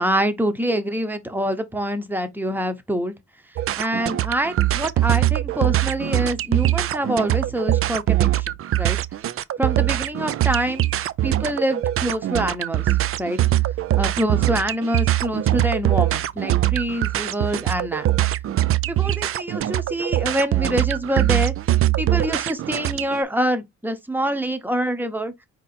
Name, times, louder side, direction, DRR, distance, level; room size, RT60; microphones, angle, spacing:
voice 1, 0.0-3.1 3.8-9.0 9.6-10.9 11.2-12.9 13.2-13.4 13.9-18.1 18.9-21.5 22.0-25.3, right 1 dB, 5° right, 0.9 m, -25 dB
sound 1, 3.6-23.2, right 14 dB, 50° right, 0.4 m, -22 dB
4.3 x 2.9 x 4.2 m
cardioid pair, 90°, 30 cm